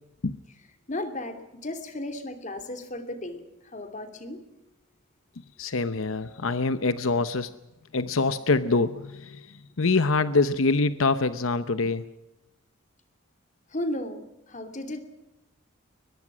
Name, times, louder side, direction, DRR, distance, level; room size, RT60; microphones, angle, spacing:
voice 1, 0.9-4.4 13.7-15.0, left 1 dB, 35° left, 7 dB, 2.8 m, -35 dB
voice 2, 5.6-7.5 7.9-12.0, left 3 dB, 80° left, 12 dB, 0.8 m, -25 dB
23.0 x 21.0 x 6.2 m, 0.95 s
head